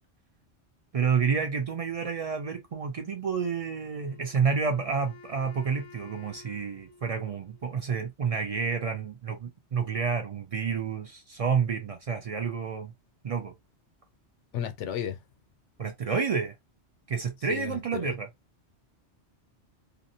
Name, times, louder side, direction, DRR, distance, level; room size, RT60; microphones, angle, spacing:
voice 1, 0.9-12.9 13.2-13.5 15.8-16.5 17.1-18.3, right 6 dB, 65° right, 0.3 m, -29 dB
Wind instrument woodwind instrument, 3.8-7.9, left 4 dB, 50° left, 0.4 m, -52 dB
voice 2, 14.5-15.2 17.5-18.1, left 9 dB, 90° left, 0.9 m, -34 dB
2.5 x 2.0 x 2.7 m
omnidirectional pair, 1.2 m